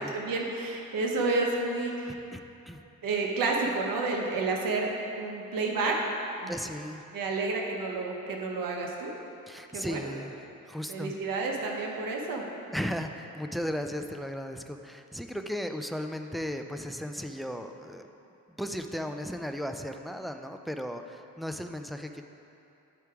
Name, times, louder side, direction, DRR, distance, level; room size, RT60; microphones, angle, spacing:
voice 1, 0.0-2.1 3.0-4.9 5.2-6.0 6.4-6.5 7.1-9.1 9.7-10.1 10.9-12.4, right 3 dB, 75° right, 0 dB, 1.2 m, -30 dB
voice 2, 2.1-2.4 2.7-2.8 6.5-7.0 9.5-10.3 10.6-11.1 12.7-18.1 18.6-22.2, equal, ahead, 6 dB, 0.4 m, -36 dB
9.9 x 4.8 x 4.6 m, 2.8 s
cardioid pair, 75°, 34 cm